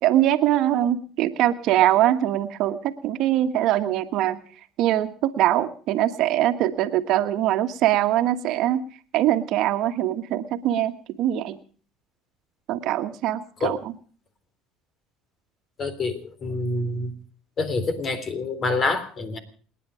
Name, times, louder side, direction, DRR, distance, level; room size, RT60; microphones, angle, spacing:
voice 1, 0.0-4.4 4.8-8.8 9.1-11.6 12.7-13.9, right 13 dB, 65° right, 9 dB, 1.5 m, -22 dB
voice 2, 15.8-17.1 17.6-19.4, left 3 dB, 40° left, 11 dB, 3.6 m, -26 dB
29.0 x 10.0 x 5.0 m, 0.42 s
supercardioid pair, 80°, 0 cm